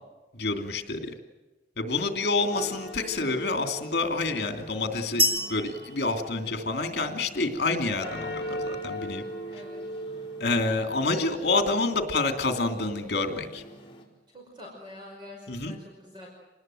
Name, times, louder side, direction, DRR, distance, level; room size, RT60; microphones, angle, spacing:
voice 1, 0.3-1.1 1.8-9.2 10.4-13.6 15.5-15.8, left 3 dB, 65° left, 6 dB, 2.8 m, -28 dB
sound 1, 2.5-14.0, equal, 30° left, 4.9 m, -40 dB
sound 2, 5.2-7.1, equal, 55° right, 2.9 m, -29 dB
voice 2, 9.5-9.8 14.3-16.3, left 2 dB, 25° right, 0 dB, 5.2 m, -46 dB
27.0 x 20.0 x 7.8 m, 1.2 s
head